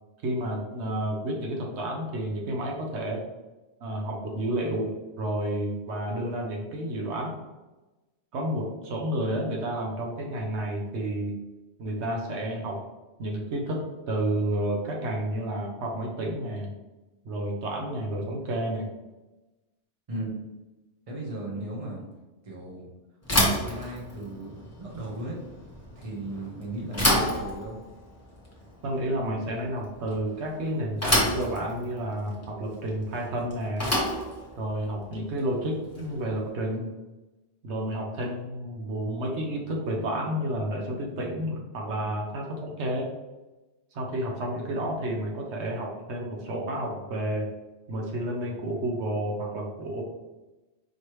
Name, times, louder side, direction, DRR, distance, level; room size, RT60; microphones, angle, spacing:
voice 1, 0.2-3.2 3.8-4.9 5.2-7.3 8.3-11.3 11.8-12.8 13.2-16.7 17.2-18.9 28.8-33.9 34.6-36.9 37.6-43.1 43.9-47.5 47.9-50.0, right 1 dB, 80° right, 0 dB, 1.1 m, -30 dB
voice 2, 21.1-22.0 22.4-22.9 23.3-24.5 24.8-25.4 26.0-27.9, right 1 dB, 35° right, -2 dB, 1.0 m, -36 dB
Bicycle / Thump thud, 23.2-36.3, left 1 dB, 15° left, 1.1 m, -30 dB
4.7 x 3.2 x 3.0 m, 1.1 s
omnidirectional pair, 1.1 m